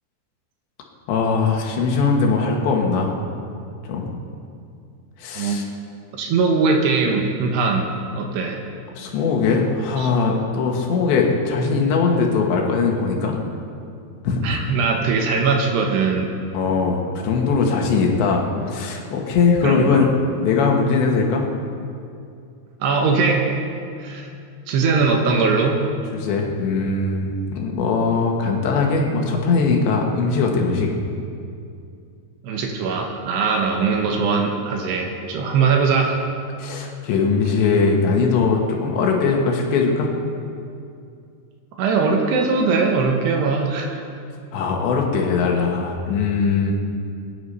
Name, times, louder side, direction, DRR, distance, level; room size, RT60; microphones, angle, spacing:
voice 1, 1.1-3.1 3.9-4.2 5.2-5.6 9.0-13.4 14.2-14.6 16.5-20.1 20.4-21.5 26.1-30.9 36.6-40.1 44.5-46.7, left 4 dB, 75° left, 0 dB, 3.8 m, -20 dB
voice 2, 6.1-7.9 8.2-8.6 10.0-10.1 14.4-16.3 19.6-20.1 22.8-23.6 24.0-24.3 24.7-25.8 32.4-36.2 41.8-44.0, right 4 dB, 70° right, 2 dB, 3.2 m, -20 dB
21.0 x 10.0 x 5.6 m, 2.4 s
omnidirectional pair, 5.2 m